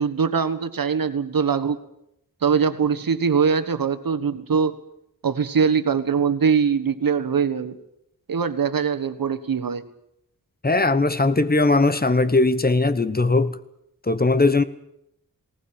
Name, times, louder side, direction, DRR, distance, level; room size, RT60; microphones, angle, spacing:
voice 1, 0.0-1.8 2.4-4.8 5.2-7.8 8.3-9.8, right 6 dB, 75° right, 1.5 m, -22 dB
voice 2, 10.6-13.6 14.1-14.6, left 3 dB, 25° left, 1.1 m, -19 dB
20.0 x 18.5 x 8.9 m
wide cardioid pair, 115°, 34 cm